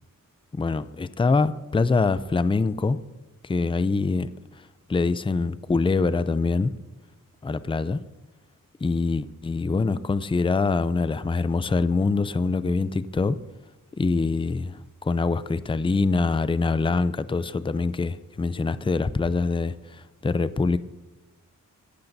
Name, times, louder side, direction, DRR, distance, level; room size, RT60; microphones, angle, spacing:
voice 1, 0.5-3.0 3.4-4.3 4.6-4.7 4.9-6.7 7.4-8.0 8.8-13.4 14.0-20.8, left 3 dB, 15° left, 14 dB, 0.4 m, -24 dB
25.5 x 12.0 x 2.7 m, 1.1 s
wide cardioid pair, 110°, 33 cm